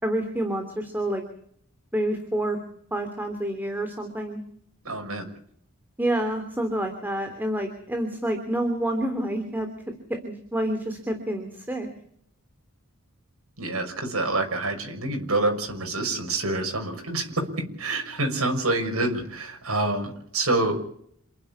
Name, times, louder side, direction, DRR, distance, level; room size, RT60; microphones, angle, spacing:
voice 1, 0.0-1.2 1.9-2.6 2.9-4.4 6.0-9.7 10.2-11.9, right 1 dB, 10° right, 5 dB, 3.1 m, -28 dB
voice 2, 4.8-5.3 13.6-17.5 17.8-20.8, right 2 dB, 80° right, 4 dB, 6.2 m, -27 dB
28.0 x 11.0 x 9.7 m, 0.66 s
head